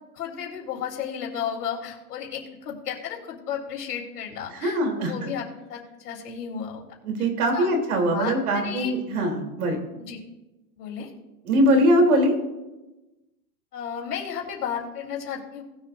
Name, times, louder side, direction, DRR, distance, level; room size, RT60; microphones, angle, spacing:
voice 1, 0.1-6.8 7.5-7.7 8.1-8.9 10.0-10.2 10.8-11.1 13.7-15.6, left 8 dB, 85° left, -1 dB, 3.5 m, -33 dB
voice 2, 4.5-5.3 7.0-9.8 11.4-12.3, equal, 70° right, 2 dB, 3.3 m, -22 dB
20.0 x 7.3 x 2.6 m, 1.1 s
supercardioid pair, 145°, 45 cm